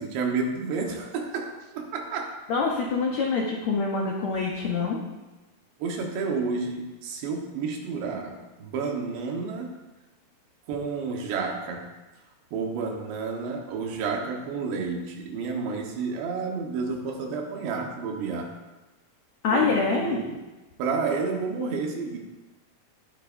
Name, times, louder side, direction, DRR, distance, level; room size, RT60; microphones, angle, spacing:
voice 1, 0.0-2.3 5.8-9.8 10.7-11.9 12.5-18.5 19.5-20.4 20.8-22.2, right 4 dB, 90° right, 1 dB, 3.6 m, -30 dB
voice 2, 2.5-5.0 19.4-20.2, left 4 dB, 80° left, -1 dB, 1.6 m, -25 dB
17.5 x 9.7 x 2.7 m, 1.2 s
omnidirectional pair, 4.8 m